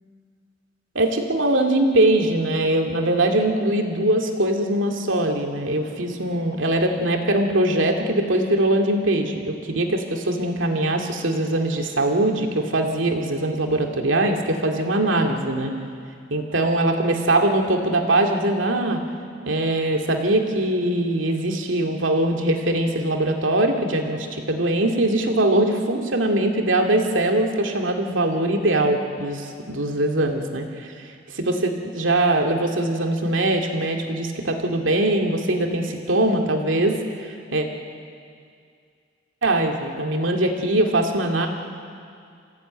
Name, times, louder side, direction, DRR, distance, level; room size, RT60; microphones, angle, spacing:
voice 1, 0.9-15.7 16.3-19.0 19.5-30.9 31.3-37.7 39.4-41.5, right 1 dB, 80° right, 3 dB, 2.4 m, -22 dB
27.0 x 16.0 x 9.0 m, 2.3 s
head